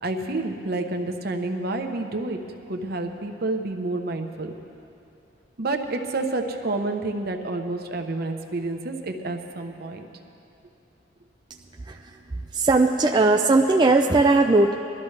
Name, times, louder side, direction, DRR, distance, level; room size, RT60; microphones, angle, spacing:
voice 1, 0.0-2.4 2.7-4.5 5.6-10.1, right 2 dB, 55° right, 5 dB, 0.9 m, -29 dB
voice 2, 11.8-12.2 12.5-14.7, right 3 dB, 25° right, 2 dB, 0.4 m, -19 dB
22.0 x 13.0 x 3.3 m, 2.8 s
head